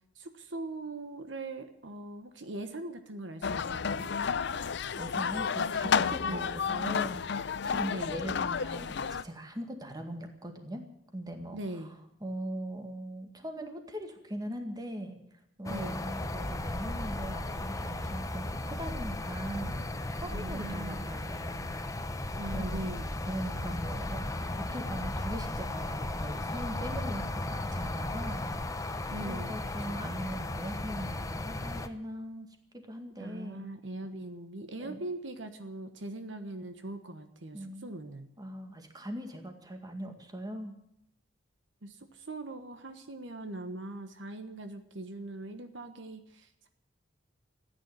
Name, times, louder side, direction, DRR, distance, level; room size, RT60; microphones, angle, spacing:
voice 1, 0.2-4.1 6.2-6.5 7.9-8.2 11.5-12.0 15.6-16.1 20.3-21.1 22.4-23.1 29.1-30.3 33.2-38.3 41.8-46.7, right 2 dB, 70° right, 8 dB, 1.3 m, -41 dB
sound 1, 3.4-9.2, left 6 dB, 65° left, 0.6 m, -31 dB
voice 2, 5.0-7.2 7.6-10.8 11.1-11.6 12.2-15.2 15.6-19.8 20.2-21.8 22.5-22.9 23.2-24.2 24.6-28.9 29.3-32.5 32.8-33.7 34.8-35.0 37.5-37.9 38.4-40.7, right 1 dB, 20° right, 5 dB, 2.0 m, -40 dB
sound 2, 15.6-31.9, left 1 dB, 20° left, 0.9 m, -35 dB
14.5 x 9.6 x 9.6 m, 0.77 s
head